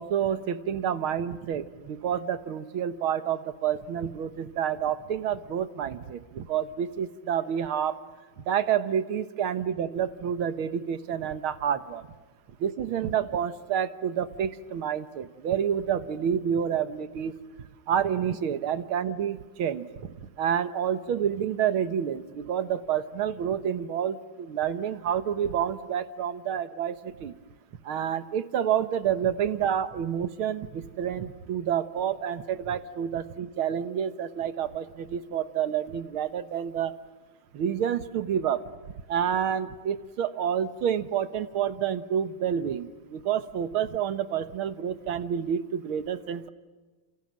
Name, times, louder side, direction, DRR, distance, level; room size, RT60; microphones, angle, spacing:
voice 1, 0.0-8.0 8.5-12.1 12.6-17.4 17.9-20.1 20.4-27.3 27.8-36.9 37.5-38.6 39.1-46.5, right 9 dB, 80° right, 12 dB, 2.0 m, -29 dB
28.5 x 27.5 x 7.6 m, 1.3 s
omnidirectional pair, 2.3 m